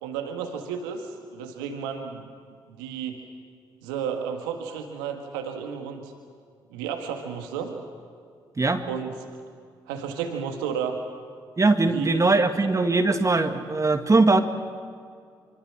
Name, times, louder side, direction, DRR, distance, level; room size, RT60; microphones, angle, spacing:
voice 1, 0.0-2.2 2.7-3.2 3.8-6.1 6.7-7.7 8.9-9.4 9.9-11.0 11.8-12.5, right 7 dB, 85° right, 4 dB, 1.8 m, -32 dB
voice 2, 11.6-14.4, right 3 dB, 30° right, 7 dB, 2.1 m, -20 dB
25.0 x 25.0 x 7.5 m, 2.2 s
hypercardioid pair, 40°, 11 cm